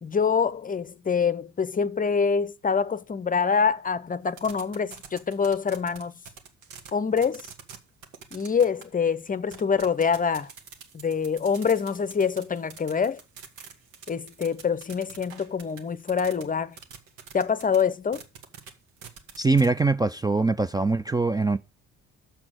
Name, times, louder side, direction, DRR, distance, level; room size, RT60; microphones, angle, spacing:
voice 1, 0.0-6.1 6.9-7.4 8.3-10.5 10.9-13.2 14.1-16.8 17.3-18.2, left 6 dB, 25° left, 0.7 m, -25 dB
sound 1, 4.3-6.9 7.2-7.8 8.0-8.8 9.5-16.4 16.7-17.8 18.1-18.7 19.0-19.8, right 7 dB, 75° right, 1.7 m, -45 dB
voice 2, 19.4-21.6, right 3 dB, 10° right, 0.5 m, -23 dB
7.0 x 6.1 x 7.5 m
supercardioid pair, 65°, 32 cm